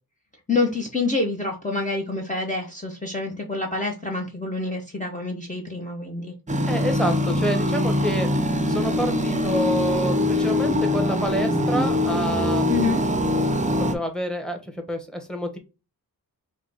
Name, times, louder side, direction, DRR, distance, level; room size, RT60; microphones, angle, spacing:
voice 1, 0.5-6.3 12.7-13.0, left 3 dB, 20° left, 0 dB, 0.9 m, -27 dB
sound 1, 6.5-14.0, left 1 dB, 20° right, 0.6 m, -23 dB
voice 2, 6.7-13.0 13.4-13.5 13.9-15.6, equal, ahead, 5 dB, 1.1 m, -28 dB
4.9 x 2.3 x 3.9 m, 0.30 s
wide cardioid pair, 55°, 38 cm